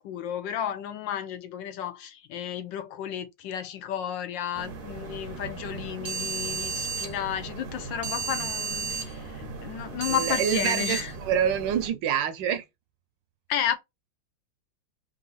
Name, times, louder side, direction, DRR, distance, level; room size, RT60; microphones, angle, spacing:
voice 1, 0.0-11.1 13.5-13.7, left 10 dB, 75° left, 1.2 m, -32 dB
sound 1, 4.6-11.9, right 4 dB, 50° right, 0.6 m, -34 dB
voice 2, 10.1-12.6, right 8 dB, 75° right, 1.2 m, -26 dB
3.9 x 2.7 x 3.9 m
omnidirectional pair, 2.2 m